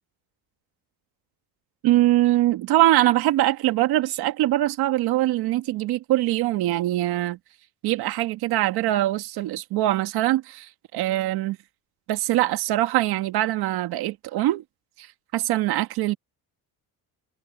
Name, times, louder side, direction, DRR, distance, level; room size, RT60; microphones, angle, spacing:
voice 1, 1.8-7.4 7.8-11.6 12.1-14.6 15.0-15.1 15.3-16.2, right 15 dB, 75° right, 1.8 m, -23 dB
cardioid pair, 160°, 38 cm